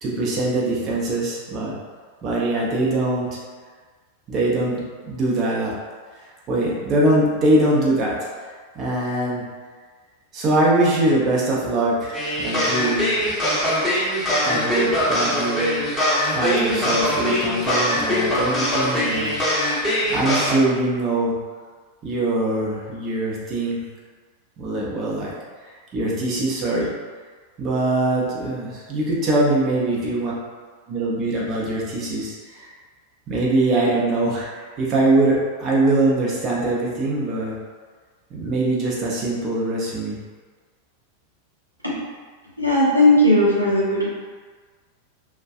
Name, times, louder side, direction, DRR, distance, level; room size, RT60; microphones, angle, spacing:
voice 1, 0.0-1.8 2.2-3.3 4.3-5.7 6.5-8.1 8.4-8.5 8.7-9.4 10.3-13.1 14.4-15.8 16.3-19.4 20.1-21.4 22.0-23.8 24.6-25.3 25.6-26.9 27.6-30.3 30.9-32.7 33.3-37.5 38.3-40.2, right 2 dB, 30° right, -5 dB, 0.6 m, -22 dB
sound 1, 12.1-20.5, left 1 dB, 10° left, 0.8 m, -22 dB
voice 2, 42.6-44.1, left 1 dB, 90° left, -7 dB, 0.6 m, -17 dB
2.4 x 2.2 x 2.4 m, 1.5 s
figure-of-eight pair, 90°, 0 cm